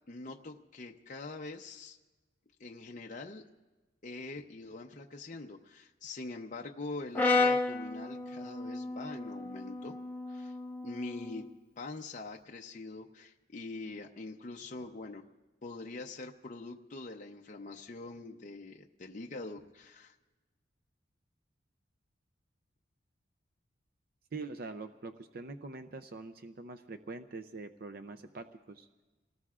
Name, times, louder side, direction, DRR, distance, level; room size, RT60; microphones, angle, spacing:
voice 1, 0.1-2.0 2.6-3.4 4.0-9.9 10.3-10.6 10.8-11.4 11.8-15.2 15.6-20.2, left 3 dB, 40° left, 1 dB, 0.7 m, -44 dB
Brass instrument, 7.1-11.4, left 3 dB, 10° left, 0.9 m, -32 dB
voice 2, 24.3-28.9, right 3 dB, 50° right, 9 dB, 0.5 m, -44 dB
28.5 x 19.0 x 2.4 m, 1.2 s
head